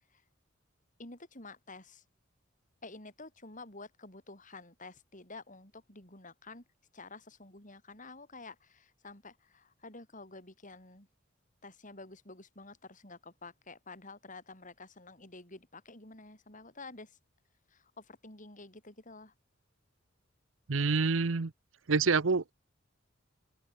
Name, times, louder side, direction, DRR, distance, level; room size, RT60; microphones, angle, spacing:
voice 1, 1.0-2.0 2.8-6.6 6.9-11.1 11.6-17.2 17.7-19.3, left 3 dB, 40° left, 7.5 m, -50 dB
voice 2, 20.7-21.5 21.9-22.5, right 4 dB, 80° right, 0.8 m, -27 dB
open air
head